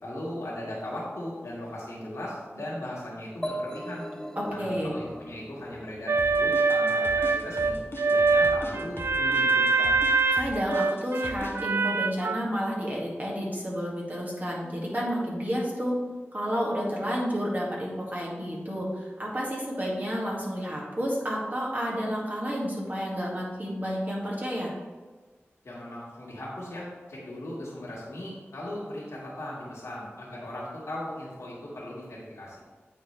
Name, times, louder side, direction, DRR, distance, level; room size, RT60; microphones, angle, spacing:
voice 1, 0.0-4.1 4.5-7.8 8.1-10.0 25.6-32.6, left 1 dB, 80° left, -7 dB, 1.9 m, -38 dB
sound 1, 3.4-7.1, equal, 15° left, 0.6 m, -39 dB
voice 2, 4.4-5.0 10.3-16.0 16.3-24.7, equal, 40° right, -4 dB, 2.1 m, -30 dB
sound 2, 6.1-12.4, right 4 dB, 65° right, 0.4 m, -24 dB
sound 3, 6.2-11.6, left 1 dB, 55° left, 1.0 m, -40 dB
8.7 x 4.4 x 3.3 m, 1.4 s
cardioid pair, 40°, 5 cm